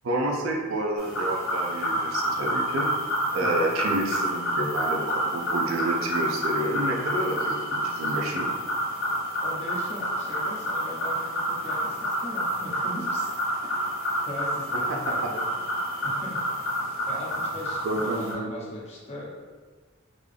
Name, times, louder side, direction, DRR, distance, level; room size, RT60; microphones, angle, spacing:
voice 1, 0.0-2.9 3.3-8.5 17.8-18.5, right 1 dB, 75° right, 0 dB, 0.5 m, -29 dB
sound 1, 1.0-18.3, right 1 dB, 70° left, 0.9 m, -28 dB
voice 2, 9.4-13.3 14.2-15.4 15.8-16.4 16.7-19.4, left 1 dB, 35° left, -4 dB, 0.8 m, -39 dB
3.8 x 2.2 x 3.3 m, 1.5 s
head